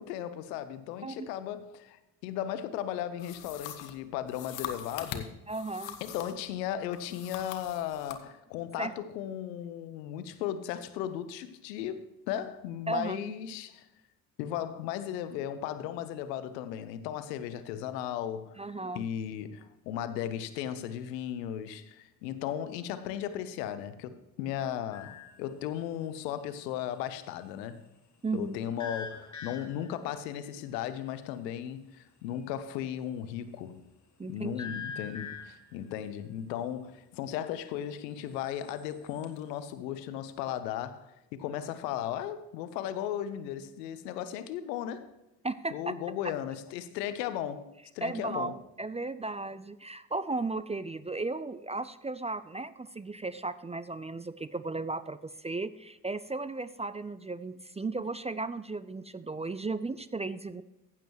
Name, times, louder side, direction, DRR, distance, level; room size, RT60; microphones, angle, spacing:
voice 1, 0.0-5.4 6.0-13.9 14.4-18.6 18.9-27.8 28.3-33.9 34.3-45.1 45.7-47.7 47.9-48.5, left 10 dB, 80° left, 0.9 m, -36 dB
sound 1, 3.2-6.5 6.9-8.2, left 9 dB, 60° left, 1.3 m, -42 dB
voice 2, 5.5-6.0 8.8-8.9 12.9-13.3 18.6-19.0 28.2-28.6 34.2-34.7 45.4-45.9 48.0-60.6, right 3 dB, 15° right, 0.4 m, -35 dB
sound 2, 24.9-25.4 28.8-30.0 34.6-35.7 38.5-39.4, left 6 dB, 35° left, 1.9 m, -42 dB
15.0 x 7.6 x 3.0 m
hypercardioid pair, 45°, 49 cm